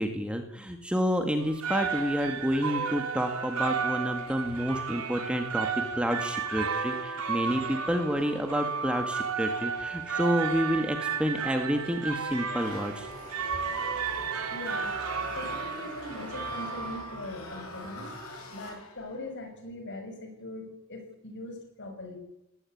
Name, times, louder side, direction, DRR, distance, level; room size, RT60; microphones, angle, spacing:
voice 1, 0.0-5.7 6.0-13.1, equal, 5° right, 5 dB, 2.1 m, -29 dB
sound 1, 1.4-17.3, right 5 dB, 90° right, 3.6 m, -33 dB
sound 2, 12.6-19.2, left 1 dB, 75° left, 7.1 m, -42 dB
voice 2, 14.5-14.9 15.3-18.1 18.5-22.2, left 2 dB, 55° left, 5 dB, 6.4 m, -41 dB
20.0 x 18.5 x 9.5 m, 0.86 s
head